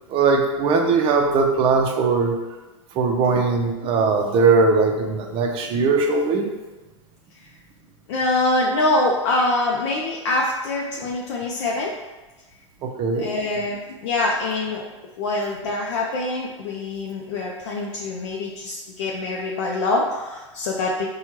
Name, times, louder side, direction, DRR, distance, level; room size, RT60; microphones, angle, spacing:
voice 1, 0.1-2.4 2.9-6.5 12.8-13.3, right 4 dB, 35° right, 3 dB, 0.6 m, -20 dB
voice 2, 8.1-11.9 13.2-14.8 15.2-21.1, left 2 dB, 60° left, -2 dB, 0.5 m, -24 dB
4.4 x 2.3 x 2.9 m, 1.2 s
hypercardioid pair, 110°, 16 cm